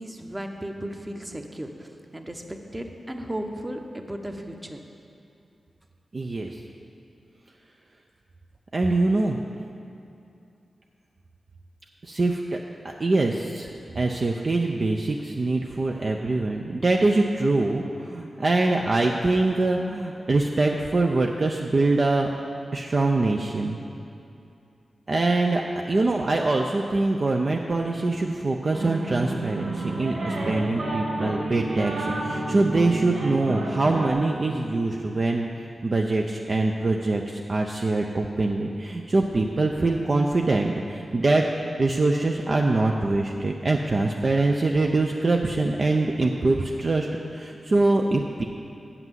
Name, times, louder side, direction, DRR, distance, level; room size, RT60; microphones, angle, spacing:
voice 1, 0.0-4.8, right 1 dB, 20° right, 4 dB, 0.9 m, -35 dB
voice 2, 6.1-6.6 8.7-9.4 12.0-12.6 12.8-13.7 13.9-22.3 22.7-23.8 25.1-41.4 41.8-48.4, right 2 dB, 50° right, 1 dB, 0.5 m, -24 dB
sound 1, 28.7-34.1, right 2 dB, 75° right, 1.4 m, -30 dB
8.0 x 5.9 x 7.5 m, 2.7 s
cardioid pair, 55°, 0 cm